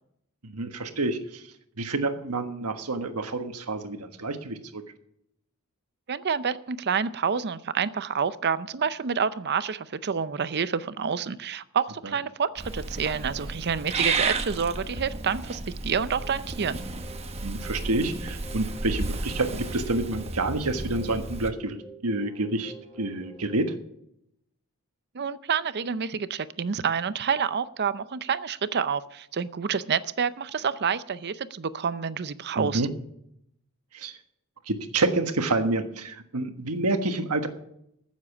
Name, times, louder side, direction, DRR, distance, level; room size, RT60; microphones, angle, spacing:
voice 1, 0.4-1.5 1.8-4.8 12.0-12.1 17.4-21.8 22.0-23.7 32.6-32.9 33.9-34.2 34.7-37.5, right 2 dB, 85° right, 7 dB, 1.4 m, -28 dB
voice 2, 6.1-16.8 25.1-32.9, right 6 dB, 50° right, 15 dB, 0.6 m, -28 dB
Purr / Meow, 12.6-21.5, right 3 dB, 30° right, 1.0 m, -33 dB
sound 1, 16.0-23.7, right 2 dB, 5° right, 5.5 m, -49 dB
14.5 x 7.4 x 7.1 m, 0.76 s
head